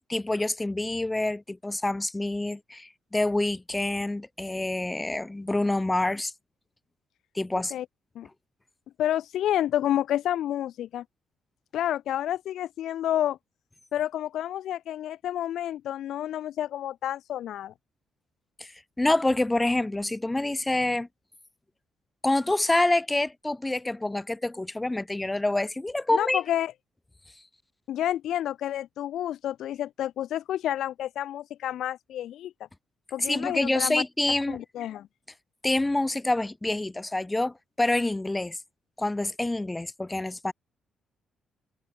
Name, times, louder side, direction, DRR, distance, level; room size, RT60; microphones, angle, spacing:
voice 1, 0.1-6.3 7.4-7.7 19.0-21.1 22.2-26.4 33.2-34.6 35.6-38.6 39.0-40.5, left 2 dB, 15° left, 3.7 m, -27 dB
voice 2, 9.0-11.0 11.7-13.4 13.9-17.7 26.1-26.7 27.9-32.5 33.1-34.0 34.5-35.1, left 11 dB, 75° left, 5.5 m, -29 dB
cardioid pair, 90°, 0 cm